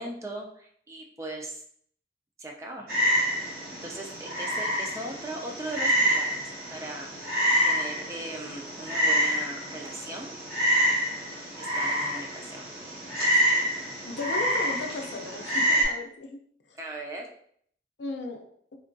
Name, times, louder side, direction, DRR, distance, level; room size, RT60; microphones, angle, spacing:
voice 1, 0.0-1.6 2.4-2.9 3.8-10.3 11.6-12.7 16.8-17.3, right 1 dB, 15° right, 1 dB, 0.3 m, -39 dB
Frog, 2.9-15.8, equal, 55° right, 0.9 m, -27 dB
voice 2, 14.0-16.4 16.7-16.8 18.0-18.5, left 3 dB, 80° left, 3 dB, 0.5 m, -36 dB
3.4 x 2.2 x 2.5 m, 0.63 s
head